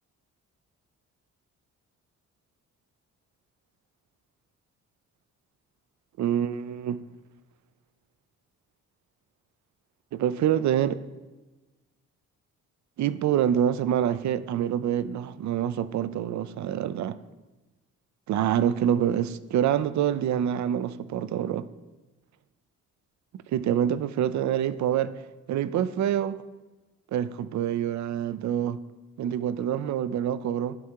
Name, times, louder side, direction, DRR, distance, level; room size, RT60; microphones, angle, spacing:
voice 1, 6.2-7.0 10.1-11.0 13.0-17.2 18.3-21.7 23.5-25.1 25.5-26.4 27.1-28.8 29.2-30.8, right 10 dB, 50° right, 15 dB, 0.4 m, -26 dB
10.5 x 3.6 x 3.5 m, 1.2 s
hypercardioid pair, 45°, 37 cm